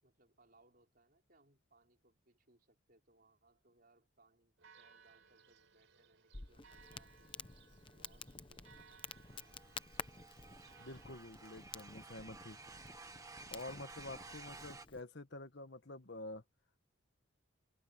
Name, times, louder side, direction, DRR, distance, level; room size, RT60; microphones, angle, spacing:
voice 1, 0.0-7.4 7.9-9.6, right 2 dB, 45° right, 5.1 m, -71 dB
Church bell, 4.6-11.1, right 6 dB, 70° right, 4.5 m, -64 dB
Crackle, 6.3-15.0, left 5 dB, 25° left, 0.9 m, -52 dB
sound 1, 9.1-14.9, right 3 dB, 15° right, 1.2 m, -54 dB
voice 2, 10.8-12.6 13.5-16.4, left 2 dB, 55° left, 1.4 m, -48 dB
open air
head